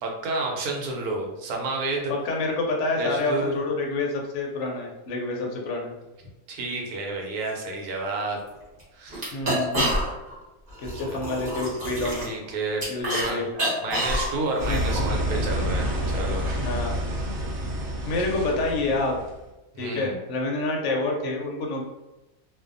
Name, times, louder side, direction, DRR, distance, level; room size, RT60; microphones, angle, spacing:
voice 1, 0.0-2.1 3.0-3.5 6.5-8.4 8.9-9.4 11.0-11.3 12.2-12.8 13.1-13.5 13.8-16.5 18.3-18.4 19.7-20.2, right 2 dB, 85° right, 1 dB, 1.1 m, -30 dB
voice 2, 2.1-5.9 9.3-9.9 10.8-12.3 12.9-13.5 14.7-14.8 16.6-17.0 18.1-19.2 19.8-21.8, left 2 dB, 65° left, 0 dB, 0.8 m, -28 dB
sound 1, 8.4-8.5 8.8-8.9 9.1-10.3 10.7-13.3 13.5-15.0, equal, 40° right, 0.9 m, -28 dB
sound 2, 14.6-19.4, equal, 65° right, 0.8 m, -28 dB
2.6 x 2.2 x 2.5 m, 1.0 s
omnidirectional pair, 1.6 m